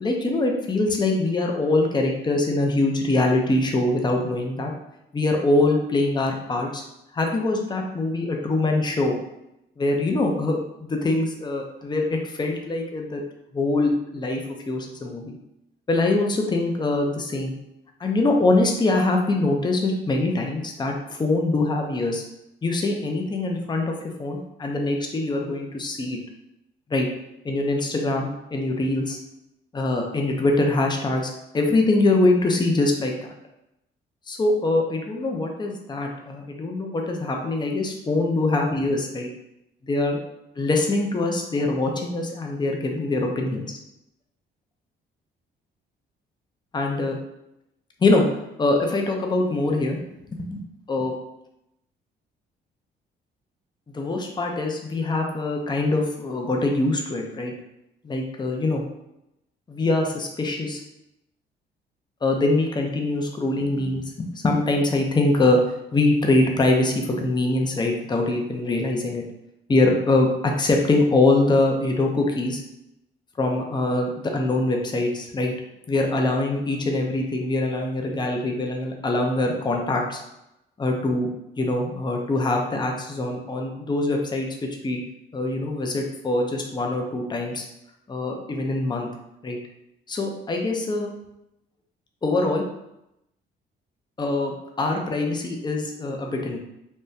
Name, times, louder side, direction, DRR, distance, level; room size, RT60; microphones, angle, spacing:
voice 1, 0.0-4.7 5.1-6.8 7.1-9.2 9.8-13.2 13.5-14.4 14.7-15.3 15.9-17.6 18.0-22.2 22.6-23.9 24.2-26.2 26.9-27.1 27.4-29.2 29.7-33.3 34.3-39.3 39.9-40.2 40.6-43.8 46.7-47.2 48.0-48.3 48.6-50.0 50.3-50.6 50.9-51.1 53.9-57.5 58.0-58.8 59.7-60.8 62.2-65.6 65.9-69.2 69.7-72.6 73.4-75.5 75.9-80.2 80.8-81.3 81.6-84.5 84.8-85.0 85.3-87.7 88.1-89.1 89.4-89.6 90.1-91.1 92.2-92.6 94.2-96.6, left 2 dB, 20° left, 1 dB, 0.5 m, -23 dB
3.5 x 2.2 x 2.7 m, 0.85 s
cardioid pair, 90°, 20 cm